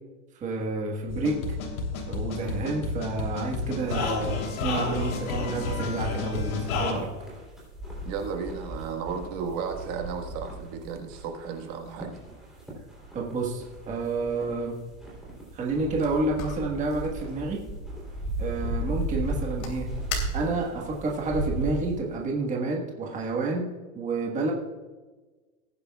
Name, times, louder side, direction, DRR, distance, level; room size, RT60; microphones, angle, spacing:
voice 1, 0.4-1.4 2.1-4.3 4.6-7.1 13.1-14.8 15.5-17.6 18.4-19.9 20.3-23.6 23.9-24.5, right 3 dB, 15° right, -1 dB, 1.5 m, -29 dB
sound 1, 1.1-6.9, left 4 dB, 75° left, 3.3 m, -31 dB
sound 2, 3.9-22.0, right 1 dB, ahead, 3.3 m, -37 dB
voice 2, 8.0-12.2, right 6 dB, 40° right, 3 dB, 1.7 m, -34 dB
sound 3, 15.6-20.9, left 6 dB, 50° left, 3.0 m, -43 dB
19.0 x 9.8 x 2.3 m, 1.3 s
supercardioid pair, 155°, 42 cm